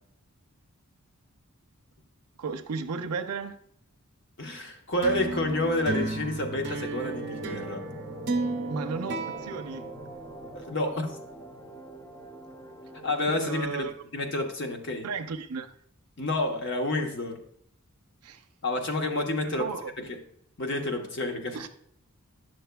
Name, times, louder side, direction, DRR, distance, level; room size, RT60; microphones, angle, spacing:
voice 1, 2.4-3.6 8.7-9.9 13.3-13.9 15.0-15.7 18.2-18.4 19.4-19.9 21.5-21.7, right 5 dB, 90° right, 0.6 m, -34 dB
voice 2, 4.4-7.8 10.5-11.1 13.0-15.1 16.2-17.4 18.6-19.7 20.0-20.2 20.6-21.7, left 1 dB, 50° left, 1.0 m, -29 dB
sound 1, 5.0-10.6, right 3 dB, 50° right, 0.7 m, -34 dB
sound 2, 7.0-13.3, right 1 dB, 15° left, 0.5 m, -43 dB
10.5 x 6.3 x 2.2 m
head